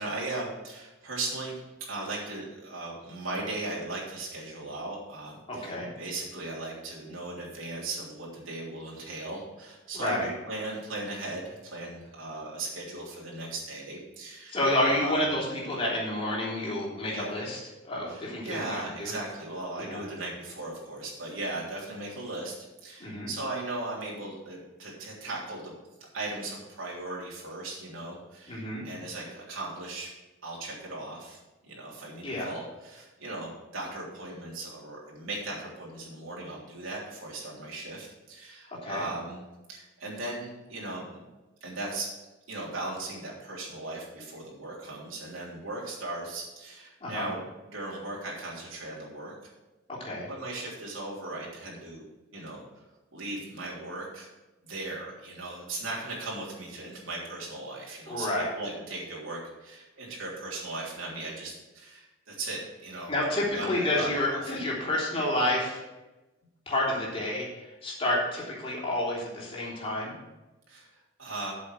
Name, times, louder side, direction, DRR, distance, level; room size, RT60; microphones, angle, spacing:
voice 1, 0.0-1.6 1.9-15.2 17.1-17.3 18.1-22.5 22.8-25.7 26.1-30.1 30.4-39.4 39.7-41.2 41.6-42.1 42.5-47.4 47.7-49.5 50.3-52.0 52.3-52.8 53.1-54.3 54.6-64.4 70.7-71.5, right 2 dB, 80° right, -4 dB, 3.4 m, -38 dB
voice 2, 5.5-5.9 9.9-10.3 14.5-19.1 19.8-20.0 23.0-23.3 28.5-28.8 32.2-32.5 38.8-39.1 47.0-47.3 49.9-50.3 58.1-58.5 63.1-65.8 66.7-70.1, left 1 dB, 30° left, -5 dB, 3.4 m, -29 dB
8.4 x 6.9 x 6.3 m, 1.1 s
head